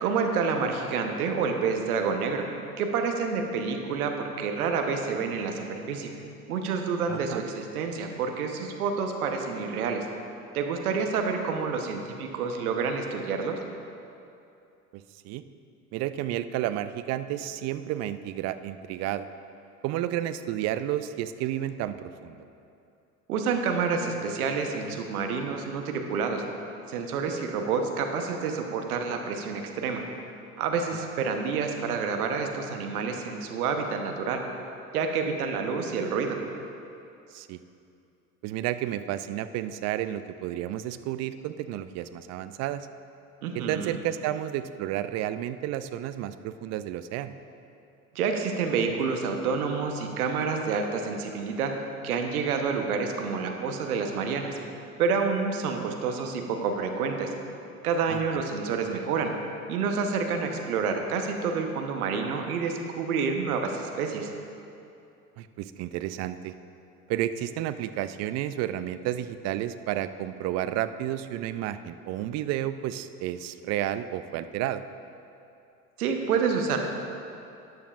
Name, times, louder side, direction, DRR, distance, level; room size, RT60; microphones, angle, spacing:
voice 1, 0.0-2.4 2.8-6.1 6.5-10.1 10.5-13.6 23.3-26.4 26.9-30.0 30.6-34.4 34.9-36.4 43.4-44.0 48.1-51.7 52.0-54.5 55.0-57.3 57.8-59.3 59.7-64.3 76.0-76.8, right 5 dB, 70° right, 4 dB, 1.1 m, -28 dB
voice 2, 7.1-7.4 14.9-15.4 15.9-19.3 19.8-22.4 31.2-31.3 37.3-37.6 38.4-42.9 43.5-47.3 58.1-58.2 65.4-66.5 67.1-74.8, right 12 dB, 35° right, 12 dB, 0.4 m, -31 dB
13.5 x 9.5 x 2.5 m, 2.7 s
figure-of-eight pair, 75°, 45 cm